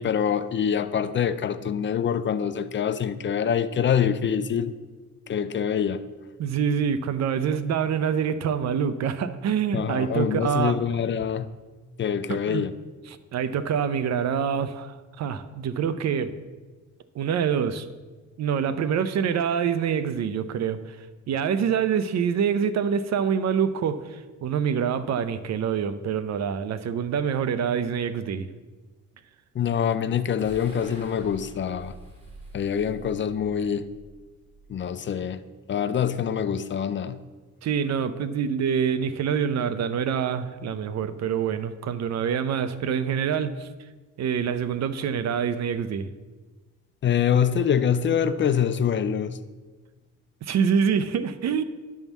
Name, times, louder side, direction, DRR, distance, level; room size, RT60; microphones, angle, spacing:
voice 1, 0.0-4.7 5.3-6.0 9.7-11.5 12.0-12.7 29.5-31.9 32.5-33.9 34.7-35.4 35.7-37.2 47.0-49.4, left 8 dB, 40° left, 0.5 m, -25 dB
voice 2, 6.4-10.8 12.3-12.6 13.1-16.3 17.1-17.9 18.4-21.0 21.3-28.5 37.6-43.7 44.2-46.1 50.4-51.6, right 7 dB, 60° right, 0.6 m, -26 dB
sound 1, 30.4-35.7, right 1 dB, 20° right, 2.9 m, -48 dB
10.5 x 3.6 x 7.1 m
cardioid pair, 90°, 30 cm